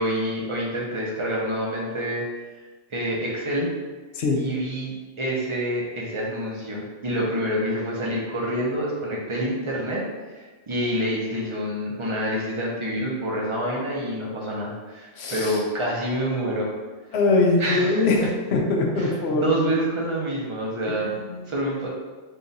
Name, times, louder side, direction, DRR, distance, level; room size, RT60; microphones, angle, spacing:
voice 1, 0.0-2.2 2.9-3.7 4.3-10.0 10.3-16.7 17.6-18.3 19.0-21.1 21.5-21.9, equal, 30° right, -4 dB, 0.7 m, -27 dB
voice 2, 15.2-15.6 17.1-18.2 18.5-19.7 21.0-21.5, left 3 dB, 60° left, 0 dB, 0.9 m, -22 dB
3.8 x 2.5 x 4.0 m, 1.3 s
omnidirectional pair, 1.3 m